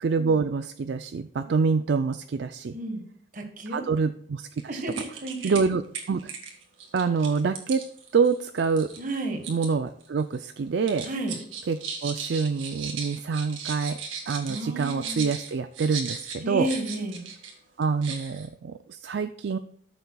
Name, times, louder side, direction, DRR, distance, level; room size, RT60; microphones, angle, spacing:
voice 1, 0.0-2.8 3.7-4.8 5.4-5.8 6.1-6.3 6.9-7.8 8.1-8.9 9.5-11.1 11.7-14.0 14.3-16.7 17.8-19.6, right 5 dB, 60° right, 10 dB, 0.4 m, -26 dB
voice 2, 3.3-3.8 4.7-5.5 9.0-9.4 11.0-11.4 14.5-15.2 16.4-17.3, right 1 dB, 45° right, 5 dB, 1.5 m, -32 dB
sound 1, 4.5-4.6 4.9-5.6 5.9-9.7 10.0-10.5 10.9-17.5 17.8-18.5, right 6 dB, 85° right, 1.9 m, -37 dB
13.5 x 6.9 x 2.3 m, 0.66 s
head